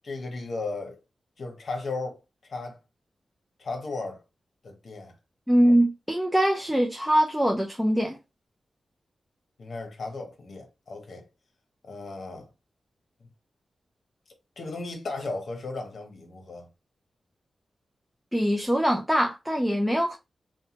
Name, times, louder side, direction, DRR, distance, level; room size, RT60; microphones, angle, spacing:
voice 1, 0.0-1.0 1.4-2.8 3.6-4.2 4.6-5.1 9.6-11.2 11.8-12.5 13.2-13.3 14.6-16.7, left 3 dB, 65° left, 0.9 m, -35 dB
voice 2, 5.5-8.2 18.3-20.2, equal, ahead, 0.5 m, -23 dB
2.6 x 2.2 x 2.9 m
wide cardioid pair, 85°, 0 cm